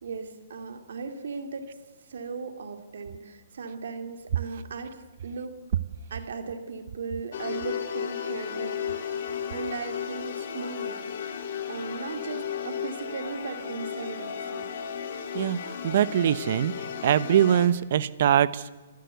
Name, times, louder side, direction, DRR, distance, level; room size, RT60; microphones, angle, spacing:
voice 1, 0.0-1.7 2.1-5.6 6.1-11.0 11.7-14.7, right 4 dB, 75° right, 7 dB, 2.6 m, -37 dB
sound 1, 7.3-17.7, left 8 dB, 60° left, 2.2 m, -34 dB
voice 2, 15.8-16.7 17.0-18.8, right 10 dB, 55° right, 17 dB, 0.9 m, -22 dB
28.5 x 13.0 x 8.2 m, 1.2 s
hypercardioid pair, 140°, 0 cm